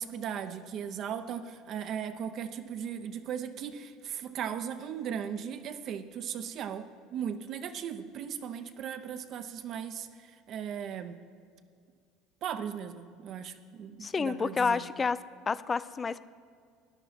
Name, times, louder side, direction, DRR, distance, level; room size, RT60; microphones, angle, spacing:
voice 1, 0.0-11.2 12.4-14.8, right 8 dB, 55° right, 9 dB, 0.6 m, -37 dB
voice 2, 14.0-15.2 15.5-16.2, left 5 dB, 25° left, 17 dB, 0.4 m, -29 dB
13.0 x 10.0 x 4.2 m, 2.2 s
supercardioid pair, 100°, 0 cm